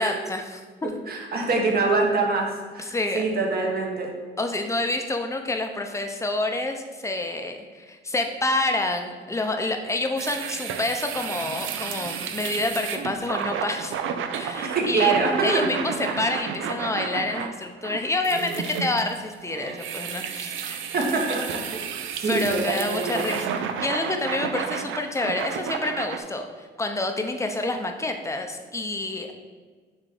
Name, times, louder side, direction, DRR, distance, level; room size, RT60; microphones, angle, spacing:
voice 1, 0.0-0.9 2.8-3.2 4.4-14.0 14.3-15.1 15.4-20.8 22.2-29.3, left 2 dB, 15° left, 5 dB, 0.7 m, -28 dB
voice 2, 0.8-4.1 14.6-15.6 16.1-16.2 20.9-21.8 22.1-23.3, right 3 dB, 50° right, 0 dB, 1.3 m, -25 dB
sound 1, 10.2-26.2, right 7 dB, 80° right, 0.5 m, -32 dB
6.1 x 3.2 x 4.9 m, 1.5 s
cardioid pair, 90°, 20 cm